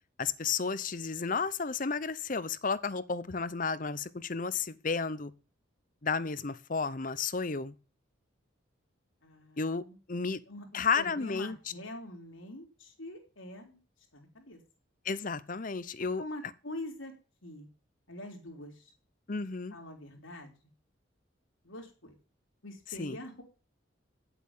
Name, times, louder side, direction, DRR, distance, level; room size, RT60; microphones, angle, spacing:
voice 1, 0.2-5.3 6.0-7.7 9.6-10.4 10.7-11.6 15.0-16.2 19.3-19.7 23.0-23.2, left 5 dB, 40° left, 0.7 m, -32 dB
voice 2, 9.2-10.0 10.5-13.8 14.1-14.6 16.2-17.1 17.4-17.7 18.1-18.9 19.7-20.5 21.6-22.2 22.6-23.4, left 1 dB, 80° left, 3.8 m, -44 dB
9.6 x 8.2 x 7.3 m
head